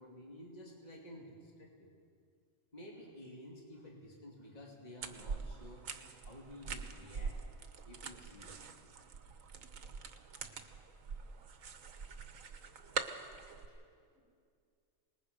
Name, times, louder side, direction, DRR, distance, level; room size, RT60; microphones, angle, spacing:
voice 1, 0.0-1.9 2.7-5.9 6.3-7.4 7.9-8.7, left 1 dB, 30° left, -1 dB, 2.6 m, -52 dB
sound 1, 5.0-13.7, right 5 dB, 80° right, 1.5 m, -44 dB
voice 2, 12.8-13.2 13.5-14.2, equal, 15° right, -5 dB, 6.2 m, -67 dB
25.5 x 20.0 x 5.2 m, 2.2 s
omnidirectional pair, 1.4 m